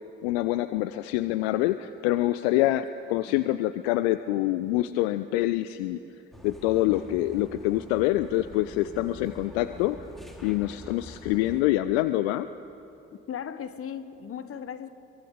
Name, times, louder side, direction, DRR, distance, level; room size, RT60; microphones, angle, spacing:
voice 1, 0.2-6.0 6.4-10.0 10.4-12.5, left 15 dB, 65° left, 13 dB, 0.6 m, -26 dB
sound 1, 6.3-11.6, left 1 dB, ahead, 4.0 m, -46 dB
voice 2, 13.3-14.9, left 8 dB, 40° left, 12 dB, 1.3 m, -37 dB
26.0 x 23.5 x 6.8 m, 2.9 s
figure-of-eight pair, 45°, 34 cm